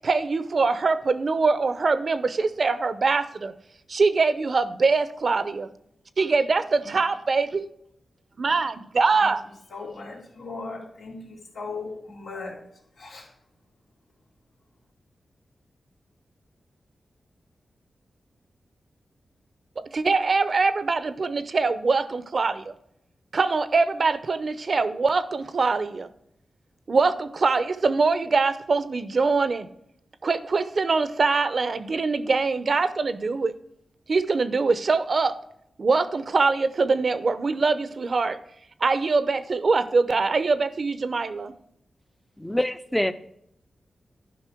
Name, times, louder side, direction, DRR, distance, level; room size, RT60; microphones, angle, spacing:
voice 1, 0.0-3.5 3.9-5.7 6.2-7.7 8.4-9.4 19.8-22.7 23.3-26.1 26.9-29.7 30.2-33.5 34.1-35.4 35.8-38.4 38.8-41.5, right 4 dB, 55° right, 13 dB, 0.7 m, -23 dB
voice 2, 9.7-12.6 13.0-13.3, left 3 dB, 85° left, -2 dB, 2.8 m, -37 dB
voice 3, 42.4-43.1, left 1 dB, 5° left, 12 dB, 0.6 m, -25 dB
11.0 x 5.4 x 4.5 m, 0.73 s
wide cardioid pair, 85°, 0 cm